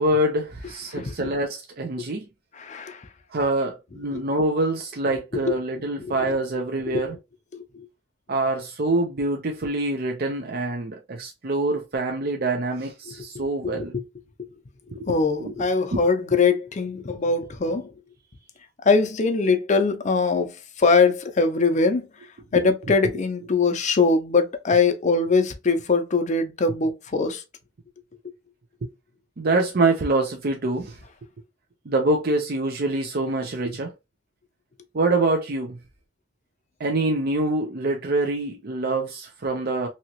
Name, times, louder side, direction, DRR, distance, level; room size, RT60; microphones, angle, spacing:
voice 1, 0.0-2.3 3.3-7.2 8.3-13.9 14.9-15.1 15.4-16.0 22.5-22.6 29.4-31.0 31.9-33.9 34.9-35.8 36.8-39.9, right 2 dB, 55° right, 0.6 m, -25 dB
voice 2, 0.9-1.3 2.5-3.1 4.1-4.2 5.3-5.6 6.0-6.4 6.9-7.1 7.5-7.9 13.1-14.0 14.4-14.5 14.9-17.9 18.8-22.1 22.5-27.4, left 4 dB, 40° left, 0.5 m, -22 dB
2.9 x 2.8 x 2.9 m
head